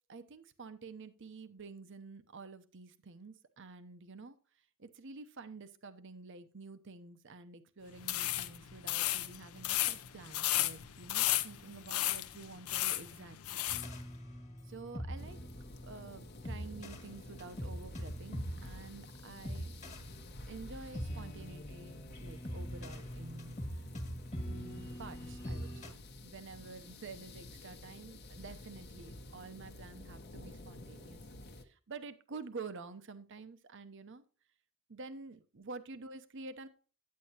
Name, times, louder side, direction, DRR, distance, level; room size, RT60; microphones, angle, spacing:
voice 1, 0.1-4.4 4.8-13.6 14.7-15.4 15.8-19.7 20.5-23.8 24.4-31.2 31.6-34.2 34.9-36.7, right 4 dB, 60° right, 12 dB, 0.8 m, -49 dB
sound 1, 8.0-13.9, left 14 dB, 90° left, 0.6 m, -34 dB
sound 2, 13.7-25.9, equal, 35° left, 1.5 m, -43 dB
sound 3, 15.2-31.6, left 1 dB, 50° left, 0.9 m, -50 dB
9.6 x 8.4 x 2.8 m, 0.38 s
head